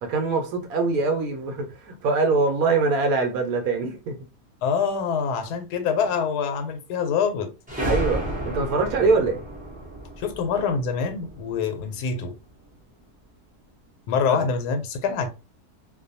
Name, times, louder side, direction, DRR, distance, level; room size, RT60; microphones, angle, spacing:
voice 1, 0.0-4.2 7.8-9.4 14.3-14.5, right 3 dB, 70° right, 1.0 m, -23 dB
voice 2, 4.6-7.5 10.2-12.3 14.1-15.3, left 6 dB, 85° left, 1.1 m, -25 dB
sound 1, 7.7-12.1, right 1 dB, 10° right, 0.4 m, -32 dB
2.6 x 2.2 x 2.6 m
omnidirectional pair, 1.7 m